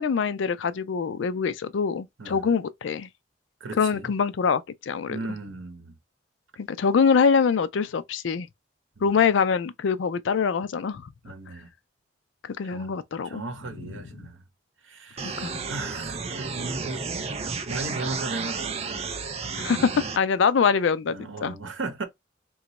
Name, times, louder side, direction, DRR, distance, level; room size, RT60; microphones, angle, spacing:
voice 1, 0.0-3.1 3.8-5.2 6.6-8.5 9.0-11.1 12.5-13.4 15.2-15.5 19.6-19.9 20.2-21.6, left 6 dB, 75° left, 0.4 m, -24 dB
voice 2, 2.2-2.5 3.6-4.1 5.1-5.9 9.0-9.2 11.2-11.7 12.6-12.9 13.2-14.4 14.8-19.0 19.8-20.0 21.1-22.0, right 3 dB, 80° right, 0.8 m, -36 dB
sound 1, 15.2-20.2, right 4 dB, 35° right, 0.4 m, -32 dB
2.9 x 2.3 x 4.0 m
head